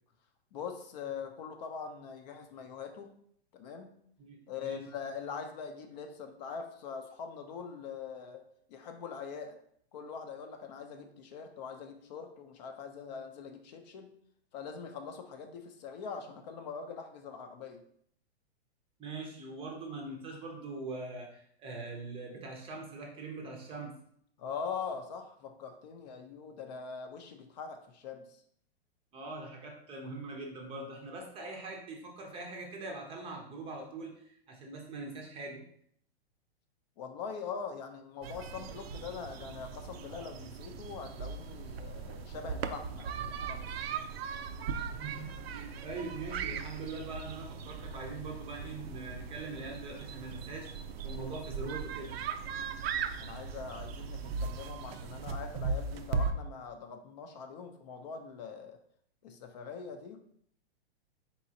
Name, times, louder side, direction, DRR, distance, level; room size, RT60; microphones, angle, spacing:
voice 1, 0.5-3.1 3.5-3.9 4.5-8.4 8.7-9.6 9.9-14.1 14.5-17.8 24.4-28.2 37.0-43.7 53.2-58.8 59.2-60.2, left 6 dB, 45° left, 6 dB, 0.6 m, -42 dB
voice 2, 4.2-4.8 19.0-24.0 29.1-35.6 44.9-50.7 51.0-52.2, right 3 dB, 15° right, 1 dB, 0.6 m, -42 dB
sound 1, 38.2-56.3, right 5 dB, 70° right, 0.5 m, -38 dB
4.2 x 3.7 x 2.7 m, 0.66 s
hypercardioid pair, 135°, 32 cm